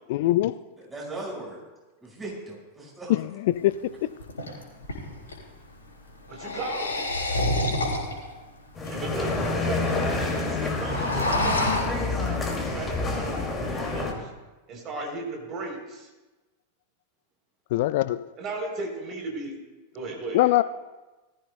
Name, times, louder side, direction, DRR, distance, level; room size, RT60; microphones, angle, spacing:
voice 1, 0.1-0.6 3.1-3.7 17.7-18.2 20.3-20.6, left 16 dB, 50° left, 15 dB, 0.3 m, -22 dB
voice 2, 0.8-1.6 2.0-3.2, right 2 dB, 15° right, -3 dB, 5.2 m, -38 dB
sound 1, 3.6-3.7 4.2-5.4 6.2-8.3 8.9-9.0 9.2-9.3 9.4-9.9 10.2-10.4 10.7-11.8, left 1 dB, 70° left, 3.7 m, -28 dB
voice 3, 6.3-7.2 8.9-14.3 14.7-16.1 18.4-19.6 19.9-20.5, right 2 dB, 35° right, 1 dB, 3.5 m, -36 dB
sound 2, 8.7-14.1, left 3 dB, 15° left, 2.4 m, -28 dB
20.0 x 14.0 x 2.2 m, 1.2 s
figure-of-eight pair, 90°, 0 cm